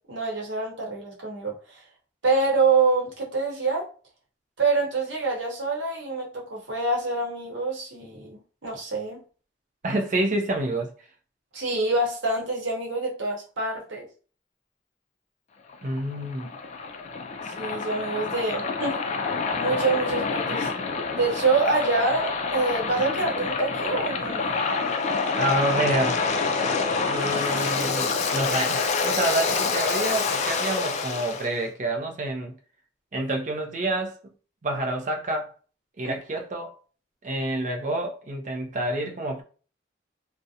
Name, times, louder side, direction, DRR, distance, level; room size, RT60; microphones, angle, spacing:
voice 1, 0.1-1.8 2.2-3.9 4.6-9.2 11.5-14.1 17.6-19.0 19.5-20.7 21.2-24.6 36.0-36.2, right 3 dB, 90° right, 0.8 m, -26 dB
voice 2, 9.8-10.9 15.8-16.6 25.3-26.2 27.1-32.6 33.1-34.2 34.6-35.5 36.0-36.8 37.2-39.4, right 1 dB, 40° right, 0.5 m, -28 dB
Waves surf, 15.7-31.5, left 4 dB, 40° left, 0.3 m, -27 dB
2.4 x 2.1 x 2.7 m
head